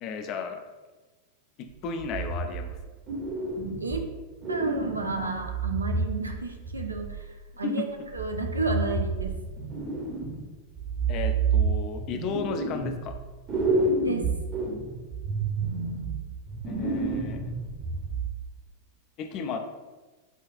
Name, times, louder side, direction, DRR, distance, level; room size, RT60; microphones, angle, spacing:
voice 1, 0.0-0.6 1.6-2.8 7.6-8.1 11.1-13.2 16.7-17.4 19.2-19.6, left 5 dB, 40° left, 6 dB, 0.4 m, -34 dB
sound 1, 2.0-2.8 3.1-4.1 4.4-7.3 8.1-10.4 10.8-13.2 13.5-18.4, right 3 dB, 30° right, 0.8 m, -29 dB
voice 2, 4.5-7.9 8.1-9.4 14.0-14.3, right 3 dB, 80° right, 3 dB, 0.4 m, -31 dB
4.9 x 2.3 x 2.5 m, 1.2 s
figure-of-eight pair, 90°, 0 cm